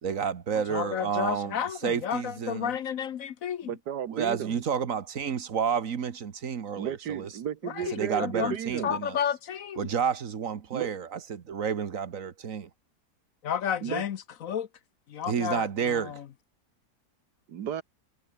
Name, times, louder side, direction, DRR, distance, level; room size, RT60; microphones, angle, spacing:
voice 1, 0.0-2.7 4.1-7.3 7.9-9.2 9.8-12.7 15.2-16.2, right 7 dB, 55° right, 1.6 m, -30 dB
voice 2, 0.7-3.7 7.6-8.6 8.8-9.9 13.4-14.7 15.1-16.2, left 8 dB, 60° left, 1.1 m, -32 dB
voice 3, 3.6-4.6 6.7-9.0 10.7-10.9 13.8-14.0 17.5-17.8, right 9 dB, 80° right, 1.7 m, -34 dB
omnidirectional pair, 1.7 m